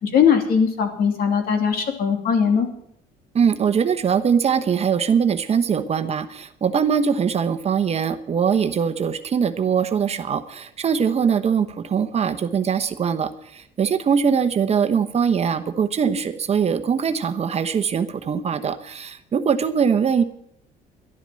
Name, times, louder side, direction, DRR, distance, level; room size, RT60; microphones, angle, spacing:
voice 1, 0.0-2.7, left 7 dB, 65° left, 4 dB, 2.9 m, -20 dB
voice 2, 3.3-20.2, right 7 dB, 40° right, 9 dB, 1.0 m, -22 dB
11.5 x 11.0 x 7.6 m, 0.72 s
cardioid pair, 110°, 17 cm